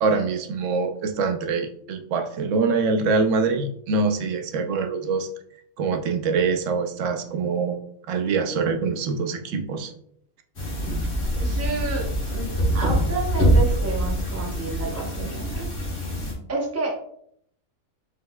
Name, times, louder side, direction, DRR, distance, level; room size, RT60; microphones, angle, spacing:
voice 1, 0.0-5.3 5.8-7.8 8.1-9.9, right 4 dB, 70° right, 6 dB, 0.9 m, -24 dB
sound 1, 10.6-16.3, equal, 50° left, 1.7 m, -24 dB
voice 2, 11.4-15.7 16.5-17.0, right 3 dB, 15° right, -1 dB, 0.6 m, -30 dB
4.8 x 4.2 x 2.2 m, 0.68 s
omnidirectional pair, 1.5 m